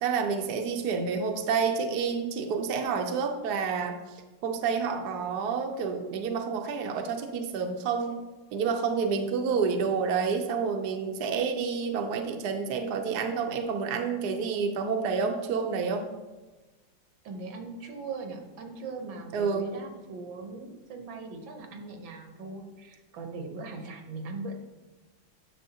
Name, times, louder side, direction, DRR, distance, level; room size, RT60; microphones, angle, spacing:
voice 1, 0.0-4.0 4.4-8.2 8.5-16.1 19.3-19.7, right 5 dB, 65° right, 4 dB, 1.1 m, -29 dB
voice 2, 17.2-24.6, right 3 dB, 80° right, 4 dB, 1.7 m, -40 dB
9.7 x 6.2 x 2.8 m, 1.2 s
omnidirectional pair, 2.1 m